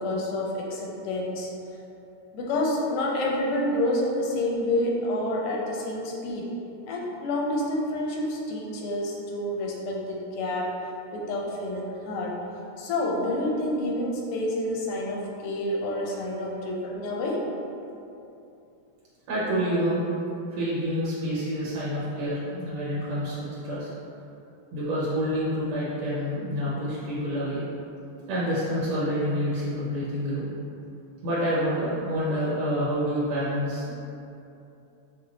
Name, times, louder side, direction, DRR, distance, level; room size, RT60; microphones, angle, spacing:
voice 1, 0.0-1.5 2.3-6.5 6.9-10.8 11.1-12.4 12.8-17.4, left 1 dB, 85° left, -2 dB, 1.6 m, -28 dB
voice 2, 19.3-20.0 20.5-23.9 24.7-27.6 28.3-30.6 31.2-33.9, equal, 80° right, -8 dB, 1.7 m, -28 dB
5.4 x 2.0 x 3.8 m, 2.8 s
omnidirectional pair, 2.4 m